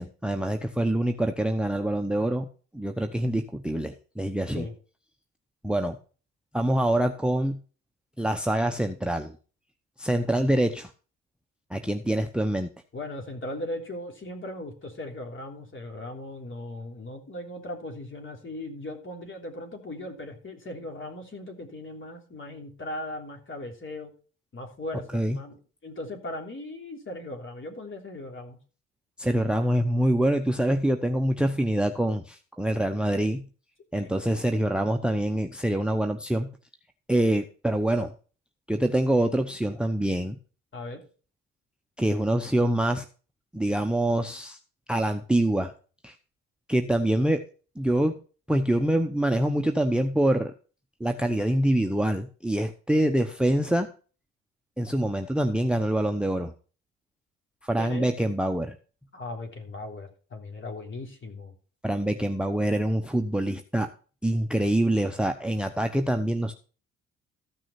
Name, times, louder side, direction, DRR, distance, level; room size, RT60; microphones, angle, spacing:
voice 1, 0.0-2.5 2.7-4.7 5.6-6.0 6.5-7.6 8.2-9.3 10.0-10.9 11.7-12.7 25.1-25.4 29.2-33.4 33.9-36.5 37.1-38.1 38.7-40.4 42.0-43.1 43.5-44.6 44.9-45.7 46.0-46.1 46.7-47.4 47.8-48.2 48.5-50.5 51.0-53.9 54.8-56.5 57.6-58.8 61.8-63.9 64.2-66.5, right 1 dB, 5° right, 9 dB, 0.8 m, -25 dB
voice 2, 12.9-24.1 24.5-28.6 33.9-34.1 40.7-41.0 52.9-53.1 57.8-58.1 59.1-61.5, left 1 dB, 35° left, 3 dB, 3.3 m, -38 dB
14.0 x 6.2 x 4.3 m, 0.37 s
hypercardioid pair, 60°, 34 cm